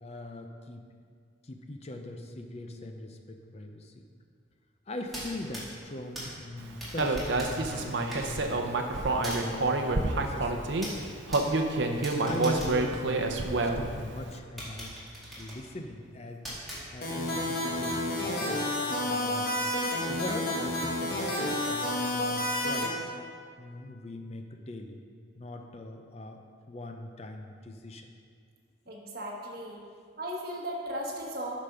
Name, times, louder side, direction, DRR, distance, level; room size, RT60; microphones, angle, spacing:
voice 1, 0.0-0.8 1.4-4.0 4.9-10.7 12.0-14.9 15.4-16.4 16.9-19.7 20.1-23.1 23.6-25.0 25.4-28.1 28.9-29.0, left 1 dB, 35° left, 4 dB, 0.5 m, -41 dB
sound 1, 5.0-13.8 14.2-14.3 14.6-17.4, equal, ahead, 2.0 m, -43 dB
Human voice, 7.0-10.9 11.3-14.0, right 2 dB, 70° right, 0.7 m, -28 dB
sound 2, 17.0-22.9, left 1 dB, 55° left, 1.4 m, -30 dB
voice 2, 28.9-29.8 30.2-31.5, equal, 50° right, -2 dB, 1.3 m, -36 dB
8.5 x 5.1 x 5.7 m, 2.2 s
head